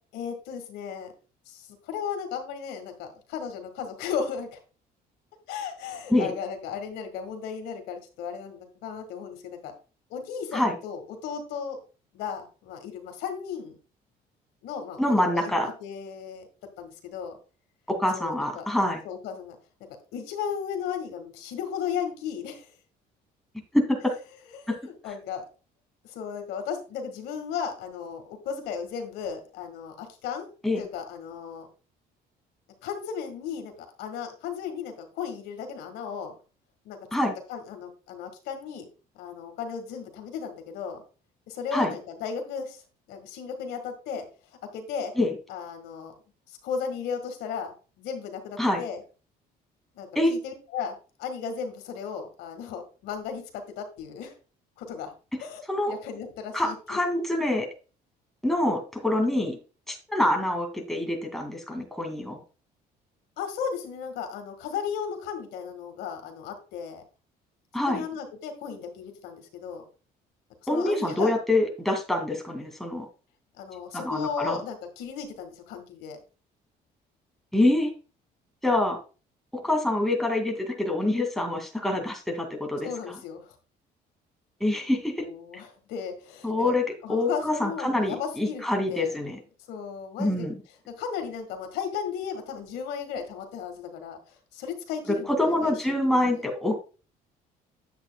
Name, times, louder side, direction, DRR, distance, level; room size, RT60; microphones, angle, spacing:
voice 1, 0.1-1.1 1.5-4.6 5.5-9.7 10.1-11.8 12.1-13.8 14.6-16.5 16.8-17.4 18.1-18.7 19.0-19.6 20.1-22.7 24.5-25.4 26.0-30.5 30.8-31.7 32.8-33.7 34.0-36.3 36.9-37.0 37.5-38.9 39.2-41.0 41.5-42.8 43.1-44.2 44.7-45.1 45.5-46.1 46.6-49.0 49.9-54.3 54.8-55.1 55.4-57.0 63.4-67.0 67.9-69.8 70.7-71.3 73.6-76.2 82.8-83.5 85.2-86.7 87.0-89.1 89.7-90.5 90.9-95.7 96.3-96.4, left 7 dB, 90° left, 5 dB, 1.9 m, -35 dB
voice 2, 15.0-15.7 17.9-19.0 23.7-24.1 24.7-24.8 30.6-30.8 37.1-37.3 41.7-41.9 45.2-45.3 48.6-48.8 50.1-50.3 55.7-55.9 56.5-57.7 58.4-59.6 59.9-62.4 67.7-68.0 70.7-73.1 73.9-74.6 77.5-77.9 78.6-79.0 79.5-82.9 84.6-85.2 86.4-86.8 87.1-89.4 90.2-90.6 95.3-96.9, left 1 dB, ahead, 2 dB, 2.5 m, -25 dB
10.5 x 7.9 x 2.3 m, 0.34 s
cardioid pair, 110°, 17 cm